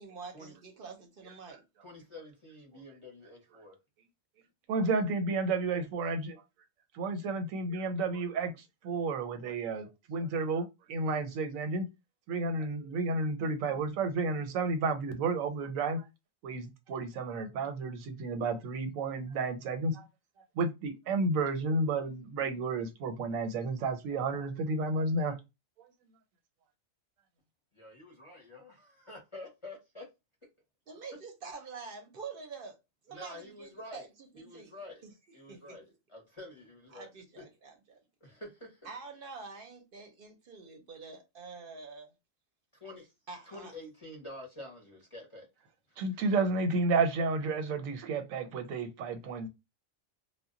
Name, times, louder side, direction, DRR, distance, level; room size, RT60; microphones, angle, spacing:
voice 1, 0.0-1.6 30.9-32.8 33.0-34.7 35.0-35.6 36.9-38.0 38.8-42.1 43.3-43.7, right 4 dB, 55° right, 0.7 m, -46 dB
voice 2, 1.8-3.8 27.7-30.1 33.1-34.1 34.4-35.1 35.3-37.1 37.4-37.5 38.2-38.9 42.8-43.1 43.5-45.5 45.9-46.0, left 1 dB, 35° left, 0.6 m, -48 dB
voice 3, 4.7-6.4 6.9-11.9 12.3-16.0 16.4-20.1 20.5-25.4 46.0-49.5, right 3 dB, 90° right, 1.0 m, -31 dB
2.1 x 2.0 x 3.6 m
omnidirectional pair, 1.4 m